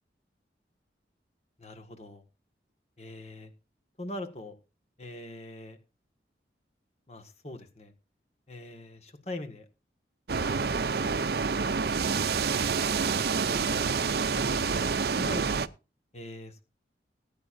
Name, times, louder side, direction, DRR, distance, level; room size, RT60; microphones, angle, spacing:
voice 1, 1.6-2.2 3.0-3.5 4.0-4.6 5.0-5.8 7.1-7.9 8.5-9.7 13.4-14.0 14.3-14.9 15.2-15.6 16.1-16.6, left 1 dB, 35° left, 5 dB, 1.8 m, -42 dB
sound 1, 10.3-15.7, right 5 dB, 60° right, 0.6 m, -28 dB
19.0 x 9.5 x 2.6 m, 0.31 s
head